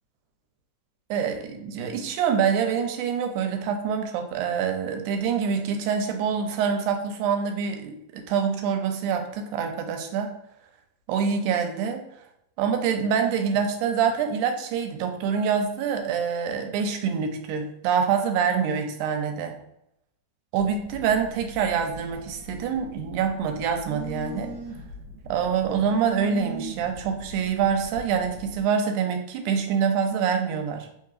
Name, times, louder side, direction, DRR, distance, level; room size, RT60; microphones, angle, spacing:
voice 1, 1.1-10.3 11.1-12.0 12.6-19.6 20.5-24.5 25.3-30.9, right 7 dB, 90° right, 5 dB, 2.1 m, -26 dB
Telephone, 20.6-28.6, right 4 dB, 70° right, 1.9 m, -40 dB
4.2 x 3.7 x 2.4 m, 0.81 s
omnidirectional pair, 3.4 m